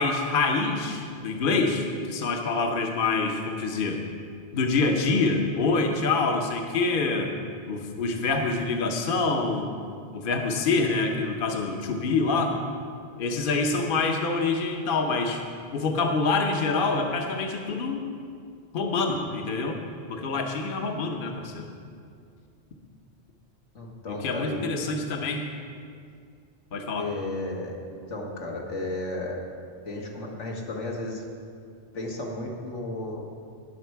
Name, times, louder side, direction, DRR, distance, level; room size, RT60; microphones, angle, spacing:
voice 1, 0.0-4.0 4.5-7.3 7.7-9.7 10.1-12.5 13.2-15.4 15.7-18.0 18.7-19.8 20.1-21.7 24.1-25.4 26.7-27.1, left 3 dB, 50° left, 3 dB, 1.0 m, -26 dB
voice 2, 23.8-24.8 27.0-29.4 29.9-31.2 31.9-33.3, left 2 dB, 85° left, -1 dB, 1.8 m, -33 dB
19.5 x 6.5 x 4.6 m, 2.3 s
omnidirectional pair, 1.2 m